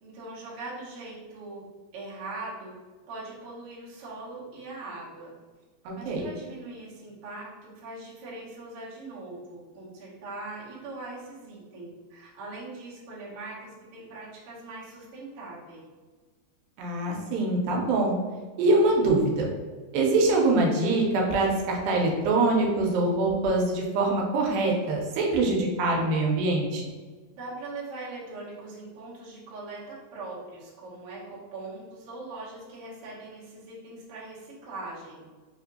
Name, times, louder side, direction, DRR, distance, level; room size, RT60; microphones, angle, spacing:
voice 1, 0.0-1.6 1.9-2.7 3.1-5.3 6.0-15.8 27.3-35.2, right 2 dB, 65° right, -7 dB, 1.4 m, -41 dB
voice 2, 5.9-6.3 16.8-18.2 18.6-19.5 19.9-26.8, right 2 dB, 85° right, 0 dB, 2.4 m, -24 dB
5.4 x 2.5 x 2.6 m, 1.4 s
omnidirectional pair, 4.1 m